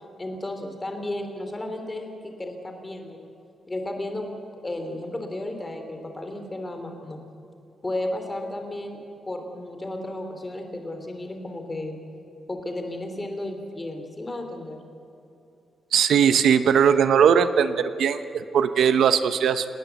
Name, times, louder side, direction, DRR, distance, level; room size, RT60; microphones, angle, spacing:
voice 1, 0.2-3.3 3.7-4.3 4.6-7.2 7.8-9.0 9.3-12.0 12.5-14.8, left 1 dB, 15° left, 5 dB, 2.9 m, -33 dB
voice 2, 15.9-19.7, right 7 dB, 70° right, 11 dB, 0.9 m, -19 dB
29.5 x 18.5 x 8.1 m, 2.8 s
wide cardioid pair, 175°, 0 cm